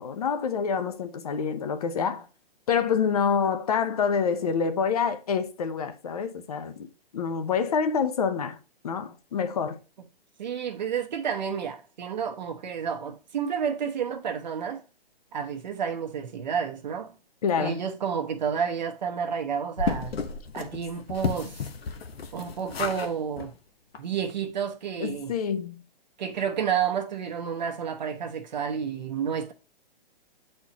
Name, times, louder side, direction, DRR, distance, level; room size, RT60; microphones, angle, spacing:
voice 1, 0.0-2.3 2.7-6.9 7.1-8.6 8.8-9.8 17.4-17.8 25.0-25.8, left 6 dB, 40° left, 0.7 m, -27 dB
voice 2, 10.4-14.8 15.3-17.1 17.6-20.1 20.5-21.7 22.3-23.5 24.0-25.3 26.2-29.5, right 7 dB, 45° right, 0.8 m, -30 dB
sound 1, 19.8-23.1 23.4-23.5 23.9-24.0 24.3-24.4, left 5 dB, 80° left, 1.0 m, -32 dB
8.1 x 4.4 x 2.8 m
hypercardioid pair, 170°, 30 cm